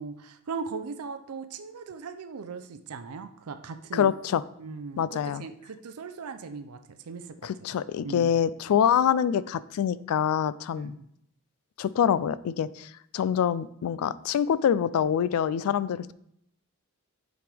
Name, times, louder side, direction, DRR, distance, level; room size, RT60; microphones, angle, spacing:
voice 1, 0.0-4.1 4.6-6.8 7.1-7.3 8.0-8.3 10.7-11.0, right 5 dB, 85° right, 9 dB, 0.5 m, -38 dB
voice 2, 3.9-4.4 5.0-5.4 7.4-11.0 11.8-16.1, left 8 dB, 80° left, 17 dB, 0.3 m, -25 dB
7.7 x 5.1 x 3.4 m, 0.72 s
head